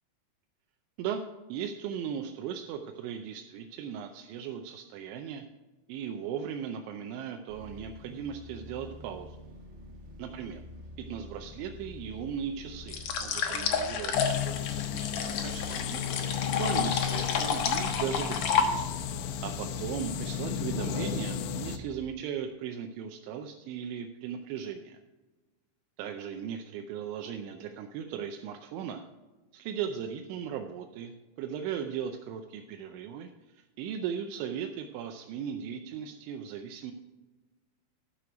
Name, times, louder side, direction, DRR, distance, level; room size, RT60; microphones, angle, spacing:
voice 1, 1.5-5.5 5.9-9.4 10.2-10.6 11.0-16.0 16.6-18.8 19.4-25.0 26.0-29.0 29.5-36.9, right 8 dB, 85° right, 4 dB, 3.0 m, -37 dB
sound 1, 7.5-22.1, left 1 dB, 60° right, 1.4 m, -47 dB
sound 2, 12.9-19.1, left 6 dB, 70° left, 2.1 m, -30 dB
sound 3, 14.1-21.8, left 9 dB, 85° left, 3.2 m, -34 dB
14.5 x 6.2 x 5.0 m, 1.1 s
omnidirectional pair, 5.4 m